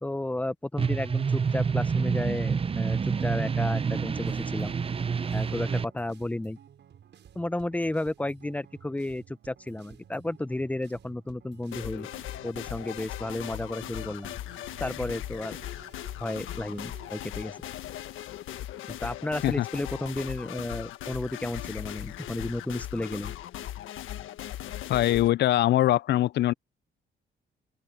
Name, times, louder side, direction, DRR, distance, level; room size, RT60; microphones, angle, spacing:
voice 1, 0.0-4.7 5.3-6.6 7.3-12.1 12.4-14.3 14.8-15.6 16.2-17.6 18.9-23.3, left 1 dB, 5° left, 0.8 m, -33 dB
sound 1, 0.8-5.9, right 6 dB, 30° right, 0.6 m, -27 dB
sound 2, 4.2-17.2, right 9 dB, 65° right, 7.6 m, -54 dB
sound 3, 11.7-25.3, left 13 dB, 85° left, 1.5 m, -38 dB
voice 2, 24.9-26.5, left 14 dB, 60° left, 0.4 m, -22 dB
open air
cardioid pair, 90°, 20 cm